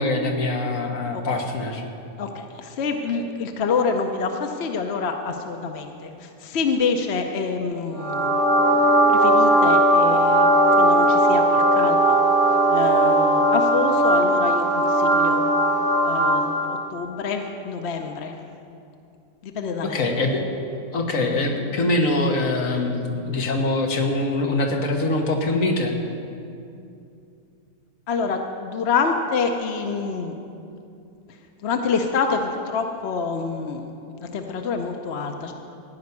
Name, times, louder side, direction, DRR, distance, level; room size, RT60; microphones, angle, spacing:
voice 1, 0.0-1.8 19.8-20.5 20.9-26.0, left 2 dB, 85° left, 3 dB, 1.7 m, -23 dB
voice 2, 2.2-12.2 12.7-15.5 16.0-18.4 19.4-20.1 28.1-30.3 31.6-33.9 34.2-35.5, left 5 dB, 60° left, 4 dB, 1.0 m, -27 dB
sound 1, 8.0-16.8, right 1 dB, 65° right, 1.6 m, -18 dB
14.5 x 5.7 x 9.6 m, 2.6 s
omnidirectional pair, 1.4 m